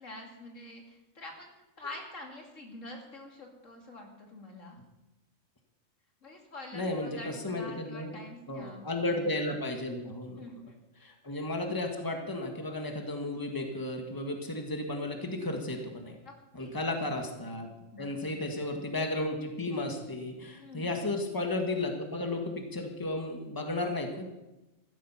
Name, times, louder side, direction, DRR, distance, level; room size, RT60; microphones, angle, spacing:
voice 1, 0.0-1.5 1.8-4.8 6.2-9.3 9.9-10.0 10.3-10.8 16.2-16.7 17.9-18.4 20.6-21.0, left 2 dB, 80° left, 1 dB, 3.0 m, -46 dB
voice 2, 6.7-8.1 8.5-10.4 11.0-16.2 16.5-17.7 18.0-24.3, left 2 dB, 15° left, 3 dB, 1.8 m, -34 dB
15.0 x 13.0 x 5.8 m, 1.0 s
omnidirectional pair, 1.3 m